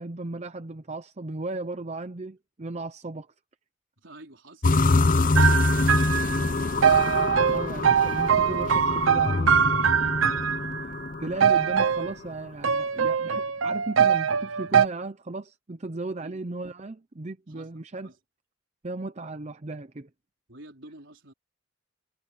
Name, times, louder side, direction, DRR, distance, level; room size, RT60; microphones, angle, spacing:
voice 1, 0.0-3.3 7.5-10.5 11.2-18.1 18.8-20.1, right 2 dB, 35° right, 0.7 m, -36 dB
voice 2, 4.0-6.6 16.2-16.4 17.5-17.7 18.0-18.2 20.5-21.3, right 1 dB, 70° right, 4.5 m, -49 dB
sound 1, 4.6-11.7, left 3 dB, 45° left, 0.8 m, -25 dB
sound 2, 5.4-10.8 11.4-12.1 12.6-14.9, right 7 dB, 90° right, 0.7 m, -23 dB
head